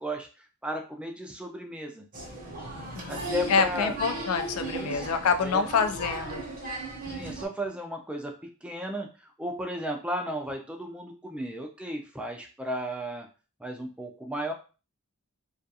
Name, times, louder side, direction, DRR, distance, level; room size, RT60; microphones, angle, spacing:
voice 1, 0.0-2.0 3.1-4.0 4.6-5.1 5.4-5.7 7.1-13.3 13.6-14.5, equal, 5° right, 3 dB, 0.3 m, -35 dB
Applause, 2.1-7.5, right 2 dB, 40° right, 0.7 m, -36 dB
voice 2, 2.9-6.4, left 5 dB, 80° left, 8 dB, 0.4 m, -27 dB
2.3 x 2.3 x 2.7 m, 0.34 s
head